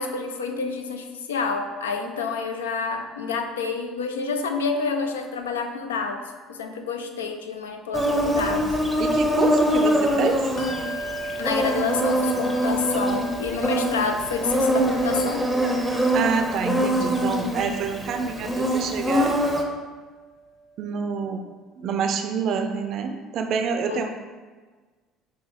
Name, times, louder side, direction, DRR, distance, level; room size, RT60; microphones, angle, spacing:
voice 1, 0.0-6.2 6.5-8.7 11.4-15.5 23.9-24.1, left 5 dB, 80° left, 6 dB, 0.3 m, -28 dB
Insect, 7.9-19.6, equal, ahead, 0.7 m, -24 dB
voice 2, 9.0-10.5 16.1-19.3 20.8-24.1, right 6 dB, 55° right, 5 dB, 0.4 m, -27 dB
Bell, 10.6-20.6, right 2 dB, 50° left, 0.7 m, -37 dB
5.6 x 2.0 x 3.1 m, 1.4 s
figure-of-eight pair, 60°, 0 cm